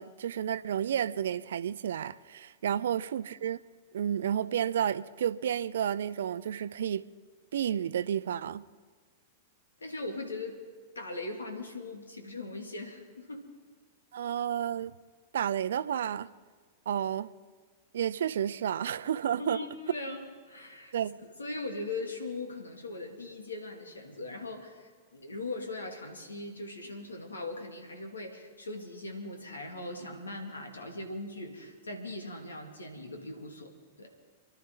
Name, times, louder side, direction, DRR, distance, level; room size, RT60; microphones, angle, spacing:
voice 1, 0.0-3.6 3.9-7.0 7.5-8.7 14.1-14.9 15.3-16.3 16.9-17.3 17.9-19.6 20.9-21.2, right 9 dB, 70° right, 0.6 m, -31 dB
voice 2, 9.8-10.6 10.9-13.5 19.4-20.9 21.4-33.7 34.0-34.1, left 2 dB, 85° left, 2.4 m, -40 dB
28.0 x 11.5 x 3.9 m
figure-of-eight pair, 100°, 0 cm